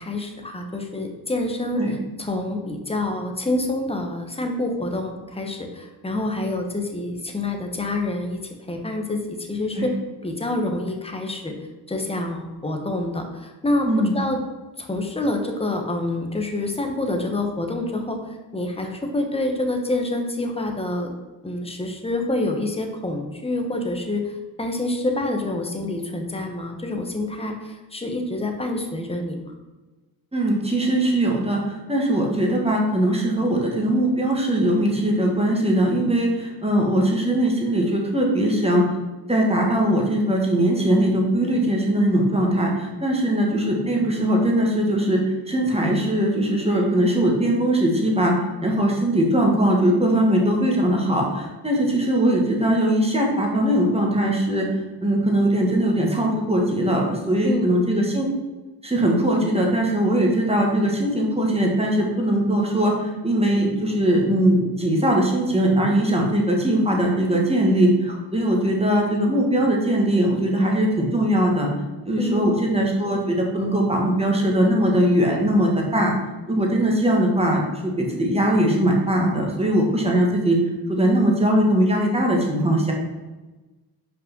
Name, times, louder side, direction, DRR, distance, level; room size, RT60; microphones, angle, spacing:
voice 1, 0.0-1.8 2.2-8.4 8.7-9.9 10.2-11.5 11.9-14.4 14.8-21.1 21.4-29.5 57.4-57.8 72.2-72.5, left 2 dB, 15° left, 3 dB, 1.2 m, -27 dB
voice 2, 30.3-38.8 39.3-48.3 48.6-54.7 55.0-58.2 58.8-71.7 72.0-76.1 76.5-80.6 80.9-82.9, right 1 dB, 15° right, -1 dB, 1.7 m, -20 dB
5.7 x 5.1 x 6.1 m, 1.2 s
wide cardioid pair, 115°, 40 cm